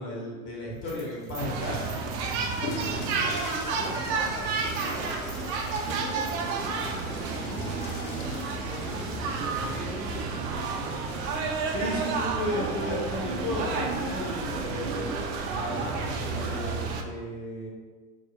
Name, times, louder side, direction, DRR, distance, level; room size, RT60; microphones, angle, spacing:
voice 1, 0.0-2.0 11.6-15.1 15.5-17.7, left 1 dB, 45° left, -4 dB, 1.4 m, -34 dB
sound 1, 0.7-3.9 4.2-4.3 4.5-6.9, right 1 dB, 10° right, 1.1 m, -49 dB
sound 2, 1.4-17.0, right 4 dB, 55° right, 0.6 m, -31 dB
Water / Toilet flush, 1.7-9.9, left 4 dB, 80° left, 0.6 m, -42 dB
voice 2, 2.8-5.3 5.6-11.4, equal, 5° left, -5 dB, 0.5 m, -42 dB
4.3 x 2.9 x 2.4 m, 1.4 s
hypercardioid pair, 85°, 42 cm